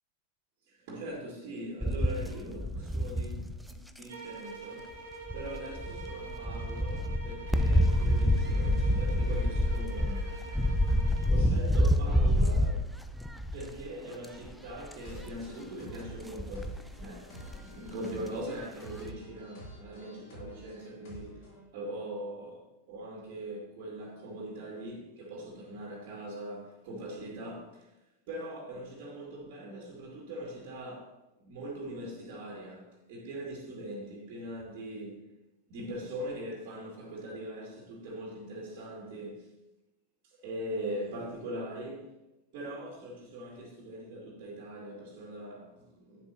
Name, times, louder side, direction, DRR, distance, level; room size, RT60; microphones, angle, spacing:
voice 1, 0.7-3.4 3.7-4.9 5.3-10.4 10.7-10.9 11.3-12.9 13.5-21.4 21.7-27.9 28.3-31.1 31.4-35.3 35.7-39.5 40.2-42.1 42.5-46.3, right 1 dB, 45° right, 2.3 m, -41 dB
sound 1, 1.8-4.0 5.3-13.9 14.2-14.5 14.8-15.3 16.2-17.0 17.5-17.6 17.9-18.0, left 1 dB, ahead, 0.6 m, -28 dB
sound 2, 4.1-11.4, right 4 dB, 65° right, 1.4 m, -45 dB
sound 3, 15.0-21.6, right 1 dB, 55° left, 3.1 m, -49 dB
11.0 x 9.4 x 2.9 m
figure-of-eight pair, 90°, 0 cm